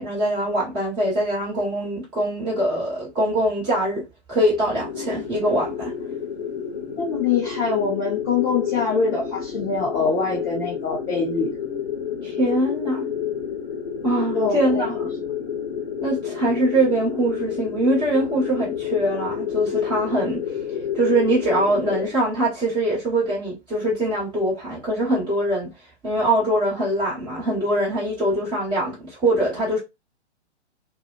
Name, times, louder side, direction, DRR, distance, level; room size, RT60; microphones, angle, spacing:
voice 1, 0.0-4.0 4.3-5.9 12.2-13.1 14.0-15.1 16.0-20.4 20.9-25.7 26.0-29.8, right 1 dB, 15° right, 1.3 m, -23 dB
sound 1, 4.7-22.1, left 8 dB, 45° left, 0.8 m, -29 dB
voice 2, 7.0-11.6 14.3-14.8, left 4 dB, 15° left, 0.5 m, -24 dB
2.5 x 2.1 x 2.4 m
figure-of-eight pair, 120°, 35 cm